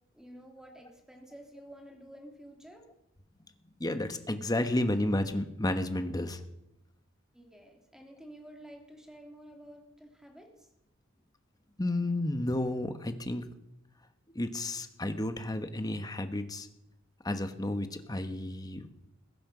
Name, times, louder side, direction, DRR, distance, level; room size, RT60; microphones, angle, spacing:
voice 1, 0.1-2.9 7.3-10.7, right 1 dB, 5° right, 1 dB, 3.0 m, -51 dB
voice 2, 3.8-6.4 11.8-13.4 14.3-16.7 17.2-18.9, left 1 dB, 20° left, 8 dB, 1.2 m, -31 dB
21.5 x 8.6 x 6.2 m, 0.88 s
head